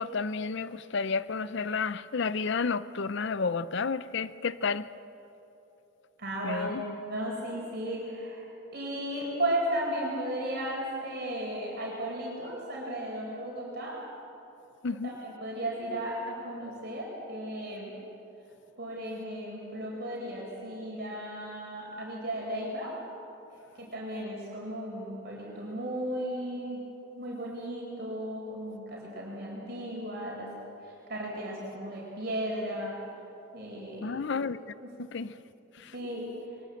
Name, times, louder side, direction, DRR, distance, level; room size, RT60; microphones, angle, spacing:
voice 1, 0.0-4.9 6.4-6.8 14.8-15.1 34.0-34.6 35.0-35.4 35.8-35.9, left 4 dB, 55° left, 15 dB, 0.5 m, -31 dB
voice 2, 6.2-14.0 15.0-17.9 18.8-22.9 23.8-26.8 27.1-30.5 31.1-33.0 33.5-34.1 35.9-36.2, right 1 dB, 45° right, -3 dB, 4.7 m, -35 dB
23.0 x 21.0 x 7.9 m, 2.9 s
head